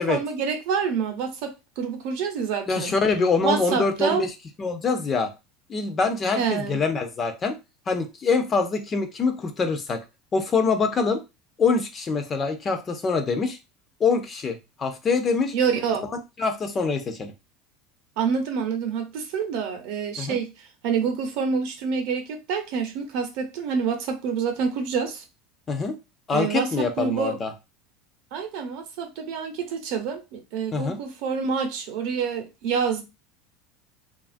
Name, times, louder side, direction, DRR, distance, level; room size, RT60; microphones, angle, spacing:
voice 1, 0.0-2.9 3.4-4.2 6.4-6.8 15.5-16.1 18.2-25.2 26.3-27.4 28.3-33.0, right 6 dB, 55° right, 0.6 m, -27 dB
voice 2, 2.7-4.3 4.6-5.3 5.7-7.5 7.9-10.0 10.3-11.2 11.6-13.6 14.0-15.5 16.4-17.3 20.2-20.4 25.7-26.0 26.3-27.5 30.7-31.0, left 4 dB, 20° left, 0.3 m, -24 dB
2.8 x 2.3 x 2.4 m
cardioid pair, 170°, 0 cm